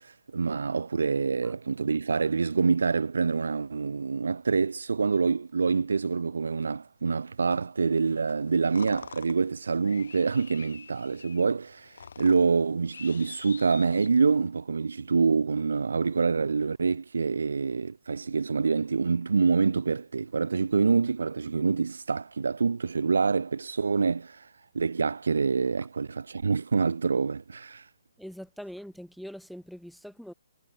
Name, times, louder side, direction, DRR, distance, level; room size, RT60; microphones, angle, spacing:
voice 1, 0.0-24.5 24.7-27.8, right 5 dB, 80° right, 0.4 m, -26 dB
sound 1, 8.3-14.5, left 6 dB, 70° left, 1.3 m, -47 dB
voice 2, 28.2-30.3, equal, ahead, 1.1 m, -43 dB
hypercardioid pair, 145°, 0 cm